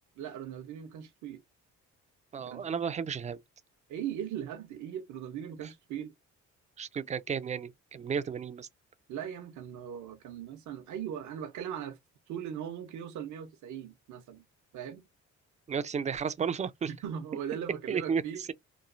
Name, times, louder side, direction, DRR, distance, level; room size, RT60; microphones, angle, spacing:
voice 1, 0.2-1.4 2.4-2.7 3.9-6.1 9.1-12.0 12.3-14.4 14.7-15.1 16.9-18.4, right 9 dB, 75° right, 0.7 m, -39 dB
voice 2, 2.3-3.4 6.8-8.7 15.7-16.9 17.9-18.2, right 6 dB, 25° right, 0.3 m, -33 dB
3.0 x 2.3 x 2.5 m
cardioid pair, 90°, 30 cm